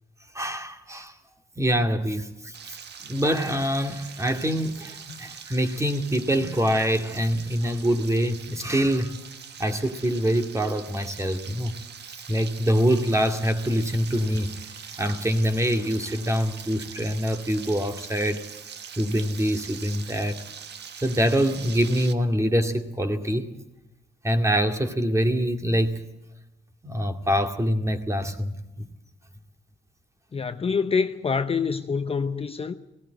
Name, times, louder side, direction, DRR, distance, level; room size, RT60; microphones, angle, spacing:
voice 1, 0.3-1.2 1.6-2.8 3.1-9.2 9.6-11.8 12.3-14.5 15.0-18.4 19.0-20.4 21.0-23.5 24.2-26.0 26.8-28.9, equal, 15° right, 2.2 m, -25 dB
Frying (food), 2.5-22.1, right 7 dB, 60° right, 1.4 m, -42 dB
voice 2, 30.3-32.7, left 5 dB, 30° left, 0.8 m, -26 dB
18.0 x 17.0 x 9.2 m
cardioid pair, 90°, 20 cm